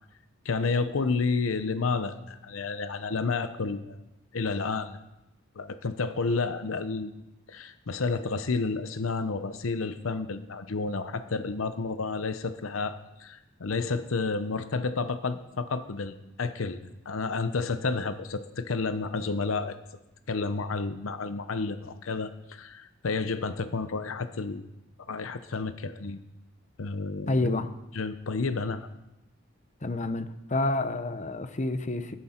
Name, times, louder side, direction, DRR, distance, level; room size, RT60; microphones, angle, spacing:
voice 1, 0.4-4.0 4.3-5.0 5.6-7.2 7.5-16.8 17.1-19.8 20.3-24.7 25.1-26.2 26.8-27.6 28.0-28.9, left 4 dB, 80° left, 0.7 m, -30 dB
voice 2, 27.3-27.7 29.8-32.2, left 2 dB, 35° left, 0.8 m, -29 dB
15.0 x 11.5 x 4.4 m
head